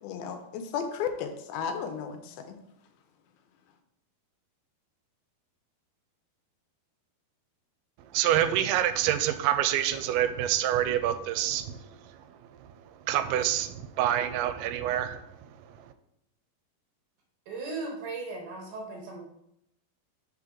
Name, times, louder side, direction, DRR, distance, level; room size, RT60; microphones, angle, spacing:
voice 1, 0.0-2.6, left 7 dB, 80° left, 7 dB, 2.4 m, -34 dB
voice 2, 8.1-11.8 12.6-12.7 13.1-15.3, right 11 dB, 85° right, 10 dB, 2.5 m, -26 dB
voice 3, 17.5-19.2, right 3 dB, 70° right, 0 dB, 2.2 m, -37 dB
5.9 x 5.6 x 3.7 m, 0.79 s
omnidirectional pair, 4.4 m